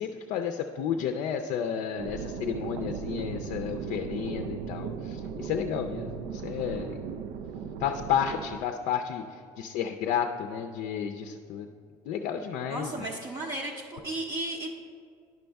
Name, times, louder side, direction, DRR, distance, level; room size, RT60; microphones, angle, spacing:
voice 1, 0.0-7.0 7.8-11.7 12.1-13.1, left 8 dB, 65° left, 6 dB, 0.4 m, -32 dB
sound 1, 2.0-8.6, right 6 dB, 85° right, 0.4 m, -37 dB
voice 2, 12.7-14.7, right 1 dB, 30° right, -1 dB, 0.6 m, -34 dB
10.5 x 5.3 x 3.4 m, 2.2 s
cardioid pair, 135°, 13 cm